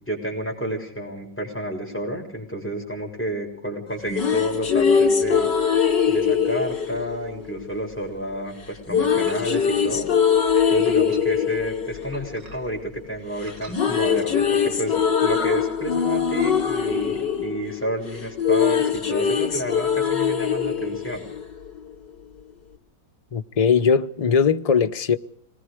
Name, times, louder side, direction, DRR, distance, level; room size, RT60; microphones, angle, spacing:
voice 1, 0.0-5.5 6.1-10.1 10.7-21.3, right 1 dB, 5° left, 6.4 m, -30 dB
sound 1, 3.9-8.0 8.9-13.1 13.4-21.9, left 7 dB, 80° left, 3.5 m, -22 dB
sound 2, 9.3-9.8 10.6-11.5 12.1-12.9 13.4-13.8, right 3 dB, 85° right, 4.3 m, -46 dB
voice 2, 23.3-25.2, left 6 dB, 30° left, 0.7 m, -20 dB
27.0 x 21.0 x 5.0 m
omnidirectional pair, 1.9 m